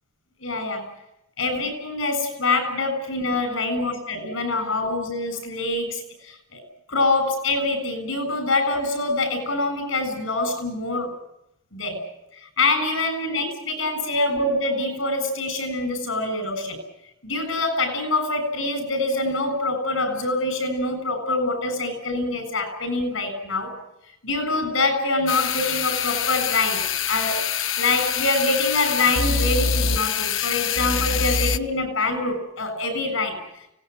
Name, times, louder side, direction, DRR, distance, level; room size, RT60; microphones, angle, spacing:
voice 1, 0.4-0.9 1.4-6.6 6.9-11.1 11.7-12.1 12.4-16.8 17.2-23.7 24.2-27.4 27.8-33.4, left 2 dB, 85° left, 8 dB, 7.3 m, -25 dB
sound 1, 25.3-31.6, left 6 dB, 70° left, 0.9 m, -25 dB
24.5 x 18.5 x 9.5 m, 0.84 s
head